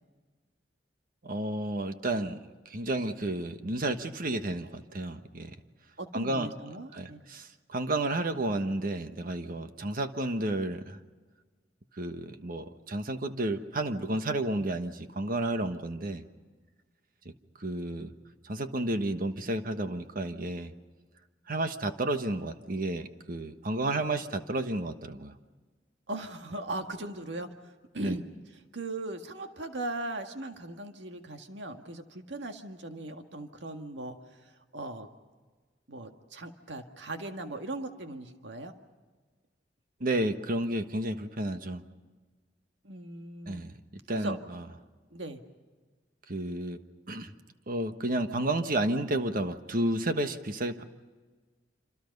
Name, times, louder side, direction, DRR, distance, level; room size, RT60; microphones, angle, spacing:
voice 1, 1.2-5.5 6.1-6.5 6.9-11.0 12.0-16.2 17.2-17.3 17.6-18.1 18.4-20.7 21.5-25.3 28.0-28.2 40.0-41.8 43.5-43.7 44.1-44.6 46.3-46.8 47.1-47.3 47.7-50.8, right 1 dB, 55° right, 8 dB, 1.3 m, -31 dB
voice 2, 6.0-7.2 26.1-27.5 27.9-28.2 28.5-35.1 35.9-38.7 42.8-43.6 44.1-44.4 45.1-45.4, right 2 dB, 85° right, 5 dB, 1.8 m, -39 dB
27.0 x 27.0 x 5.4 m, 1.4 s
head